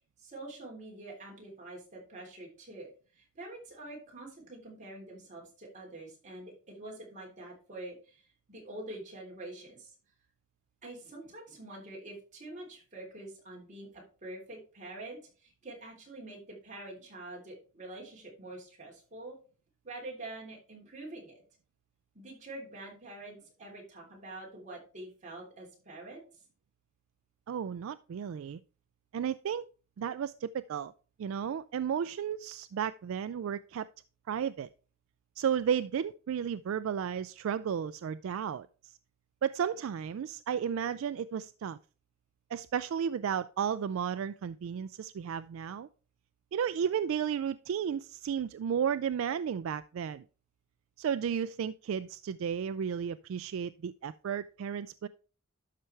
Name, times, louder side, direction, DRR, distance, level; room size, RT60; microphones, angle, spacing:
voice 1, 0.2-9.9 10.8-19.4 19.8-21.4 22.2-26.3, right 2 dB, 35° right, -2 dB, 3.4 m, -46 dB
voice 2, 27.5-28.6 29.1-29.7 30.0-30.9 31.2-33.9 34.3-34.7 35.4-38.9 39.4-41.8 42.5-45.9 46.5-50.2 51.0-55.1, right 8 dB, 65° right, 14 dB, 0.3 m, -33 dB
12.0 x 5.6 x 3.3 m, 0.37 s
head